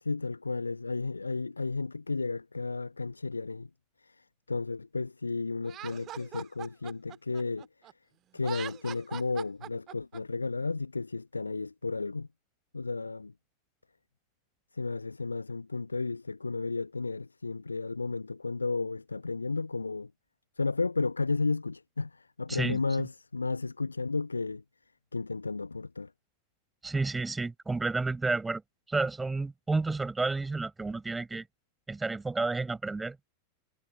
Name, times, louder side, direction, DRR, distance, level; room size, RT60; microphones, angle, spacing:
voice 1, 0.0-3.7 4.0-7.7 8.3-12.3 12.7-13.3 14.7-20.1 20.6-24.6 25.1-26.1, left 3 dB, 80° left, 1.1 m, -33 dB
Laughter, 5.6-7.9 8.3-10.2, right 13 dB, 30° right, 2.0 m, -42 dB
voice 2, 22.5-22.8 26.8-28.6 28.9-31.4 31.9-33.2, right 3 dB, 10° right, 4.8 m, -31 dB
figure-of-eight pair, 90°, 0 cm